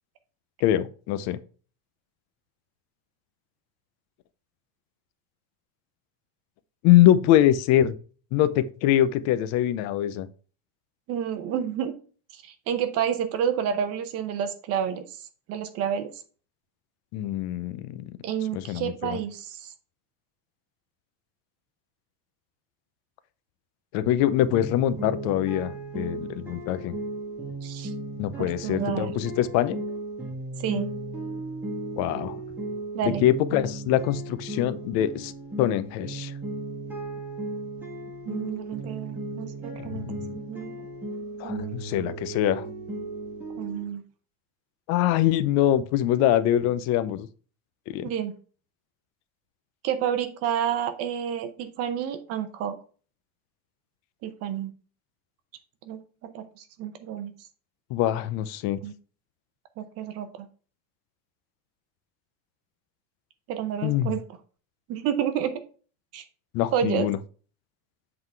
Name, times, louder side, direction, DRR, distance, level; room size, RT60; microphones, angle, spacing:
voice 1, 0.6-1.4 6.8-8.0 8.3-10.3 17.1-18.1 18.5-19.2 23.9-26.9 28.2-29.8 32.0-32.4 33.0-35.3 35.6-36.3 39.8-40.3 41.4-42.7 44.9-47.3 47.9-48.1 57.9-58.8 63.8-64.1 66.5-67.2, left 12 dB, 45° left, 14 dB, 0.6 m, -23 dB
voice 2, 11.1-11.9 12.3-15.2 15.5-16.1 18.2-19.7 27.6-27.9 28.4-29.1 30.6-30.9 32.9-33.2 38.3-40.0 40.3-40.8 41.4-41.7 42.1-42.2 43.5-44.0 48.0-48.4 49.8-52.8 54.2-54.7 55.9-57.3 58.8-58.9 59.8-60.5 63.5-64.2 64.9-65.6 66.1-66.2 66.7-67.1, right 9 dB, 40° right, 10 dB, 0.7 m, -30 dB
sound 1, 24.5-43.8, right 2 dB, 5° right, 1.5 m, -36 dB
7.8 x 3.9 x 4.5 m, 0.39 s
cardioid pair, 175°, 38 cm